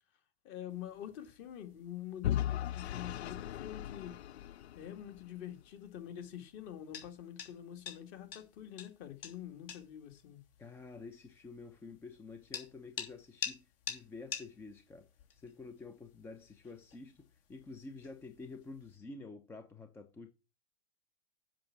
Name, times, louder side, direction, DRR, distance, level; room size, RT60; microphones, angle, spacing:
voice 1, 0.4-4.2 4.7-10.4, left 11 dB, 35° left, 2.0 m, -46 dB
sound 1, 0.7-19.0, left 8 dB, 55° left, 3.0 m, -50 dB
Vehicle / Engine, 2.2-5.2, left 12 dB, 75° left, 0.5 m, -37 dB
voice 2, 10.6-15.1 15.4-20.3, left 3 dB, 5° left, 0.5 m, -49 dB
7.6 x 5.7 x 7.3 m
hypercardioid pair, 120°, 33 cm